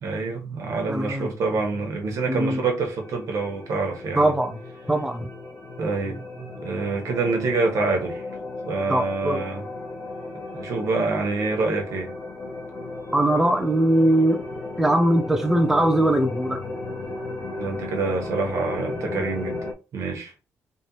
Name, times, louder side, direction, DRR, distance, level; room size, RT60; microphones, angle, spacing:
voice 1, 0.0-4.3 5.8-8.3 8.7-9.6 10.5-12.1 17.6-19.6 19.9-20.3, right 3 dB, 70° right, 1.3 m, -26 dB
voice 2, 0.9-1.3 2.3-2.6 4.2-4.6 4.9-5.3 8.9-9.4 13.1-14.4 14.8-16.6, right 1 dB, 5° right, 0.7 m, -21 dB
sound 1, 2.0-19.7, left 2 dB, 90° left, 1.4 m, -35 dB
4.1 x 3.2 x 3.0 m
cardioid pair, 110°, 6 cm